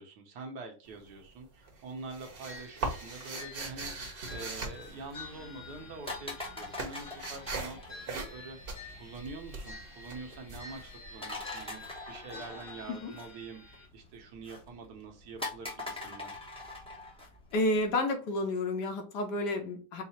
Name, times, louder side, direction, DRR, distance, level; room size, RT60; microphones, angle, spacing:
voice 1, 0.0-3.9 4.3-16.3, right 3 dB, 70° right, 4 dB, 1.3 m, -46 dB
sound 1, 0.8-1.4 1.7-5.7 6.0-11.6, right 3 dB, 40° right, 0.9 m, -40 dB
sound 2, 2.4-13.9, left 3 dB, 40° left, 0.9 m, -50 dB
sound 3, 4.2-17.9, left 2 dB, 5° left, 0.6 m, -45 dB
voice 2, 17.5-20.0, left 2 dB, 75° left, 3 dB, 1.4 m, -30 dB
4.7 x 2.0 x 4.1 m, 0.35 s
omnidirectional pair, 1.9 m